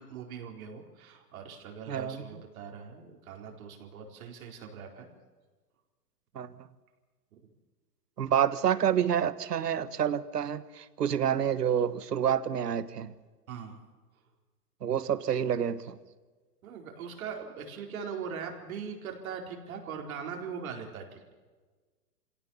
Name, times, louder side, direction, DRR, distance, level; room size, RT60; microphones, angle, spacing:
voice 1, 0.0-5.1 13.5-13.8 16.6-21.3, right 6 dB, 60° right, 1 dB, 4.4 m, -41 dB
voice 2, 1.9-2.3 6.3-6.5 8.2-13.1 14.8-16.0, right 9 dB, 85° right, 14 dB, 1.5 m, -28 dB
25.5 x 17.0 x 7.2 m, 1.3 s
hypercardioid pair, 140°, 46 cm